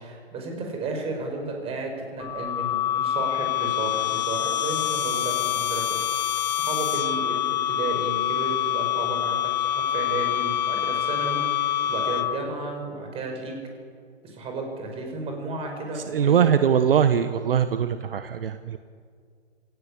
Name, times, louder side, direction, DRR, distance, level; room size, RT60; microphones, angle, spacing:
voice 1, 0.0-5.9 6.5-13.5 14.2-16.6, right 2 dB, 15° right, 2 dB, 5.6 m, -33 dB
sound 1, 2.2-12.6, left 11 dB, 40° left, 1.0 m, -26 dB
voice 2, 15.9-18.8, right 8 dB, 55° right, 11 dB, 1.2 m, -22 dB
27.5 x 16.5 x 8.6 m, 2.1 s
figure-of-eight pair, 135°, 34 cm